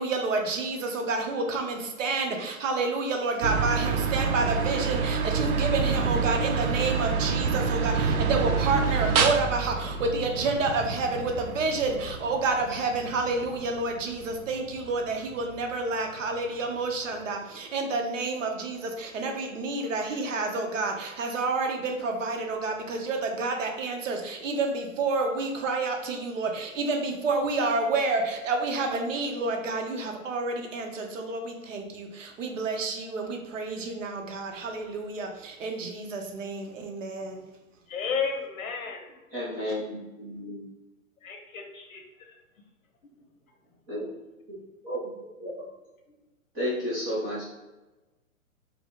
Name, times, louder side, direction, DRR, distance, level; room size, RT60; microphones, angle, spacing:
voice 1, 0.0-37.4, right 3 dB, 60° right, 0.9 m, -29 dB
sound 1, 3.4-15.7, right 5 dB, 90° right, 0.6 m, -28 dB
voice 2, 37.9-39.2 41.2-42.3, left 6 dB, 75° left, 1.1 m, -33 dB
voice 3, 39.3-40.6 43.9-44.0 44.8-45.0 45.4-45.7 46.5-47.5, equal, 10° right, 0.4 m, -32 dB
4.8 x 2.0 x 3.5 m
hypercardioid pair, 135°, 42 cm